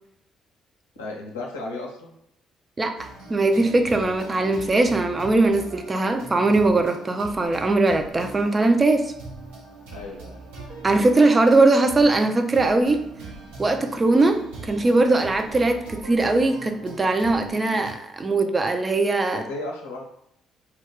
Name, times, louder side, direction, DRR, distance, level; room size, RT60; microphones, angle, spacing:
voice 1, 1.0-2.2 9.9-10.4 19.3-20.0, left 2 dB, 80° left, -2 dB, 0.6 m, -34 dB
voice 2, 2.8-9.1 10.8-13.0 13.6-14.4 14.7-19.4, right 2 dB, 30° right, 5 dB, 0.4 m, -20 dB
sound 1, 3.0-17.9, right 4 dB, 75° right, 0.8 m, -41 dB
2.2 x 2.2 x 3.6 m, 0.78 s
figure-of-eight pair, 45°, 0 cm